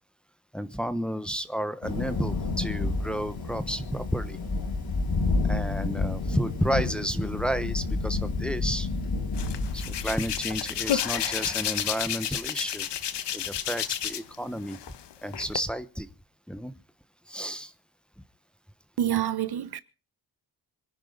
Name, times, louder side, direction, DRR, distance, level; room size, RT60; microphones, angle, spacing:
voice 1, 0.5-4.4 5.4-8.9 9.7-12.9 13.3-14.8 15.2-16.1 16.5-16.7 17.3-17.7, equal, ahead, 1.1 m, -31 dB
Thunder, 1.8-11.5, left 3 dB, 65° left, 6.3 m, -30 dB
Hands, 9.4-14.4 14.7-15.6, left 10 dB, 85° left, 1.2 m, -31 dB
voice 2, 19.0-19.8, right 10 dB, 65° right, 1.1 m, -27 dB
26.0 x 10.5 x 3.9 m
wide cardioid pair, 130°, 41 cm